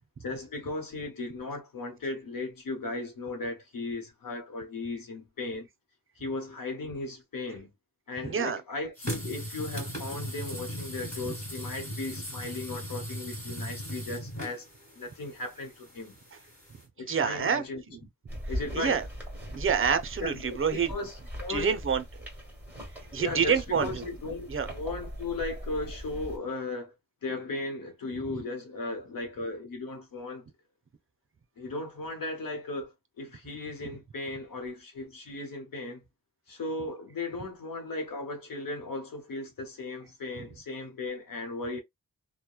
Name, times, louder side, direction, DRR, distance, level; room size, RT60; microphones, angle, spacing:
voice 1, 0.2-5.7 6.2-7.7 8.1-14.7 15.0-16.2 17.0-17.8 18.5-19.0 20.2-20.6 20.9-21.8 23.2-26.9 27.2-30.4 31.6-36.0 36.5-41.8, left 2 dB, 70° left, 0.8 m, -36 dB
voice 2, 8.2-8.6 17.1-17.6 18.7-19.0 19.5-20.9 21.5-22.0 23.1-24.0 24.5-24.7, right 6 dB, 40° right, 0.5 m, -27 dB
sound 1, 9.0-16.8, equal, 20° left, 1.7 m, -38 dB
sound 2, 18.3-26.4, equal, 5° right, 1.4 m, -40 dB
3.0 x 2.1 x 2.2 m
wide cardioid pair, 115°, 35 cm